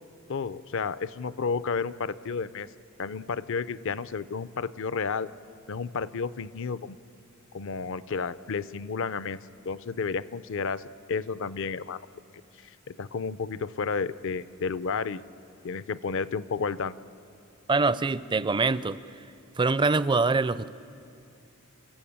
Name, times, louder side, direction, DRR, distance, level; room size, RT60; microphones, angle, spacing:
voice 1, 0.3-2.7 3.0-5.3 5.7-7.0 7.5-9.4 9.6-12.1 12.6-15.2 15.6-17.0, left 5 dB, 65° left, 16 dB, 0.5 m, -31 dB
voice 2, 17.7-19.0 19.6-20.7, right 3 dB, 20° right, 16 dB, 0.4 m, -24 dB
28.5 x 14.5 x 8.7 m, 2.5 s
head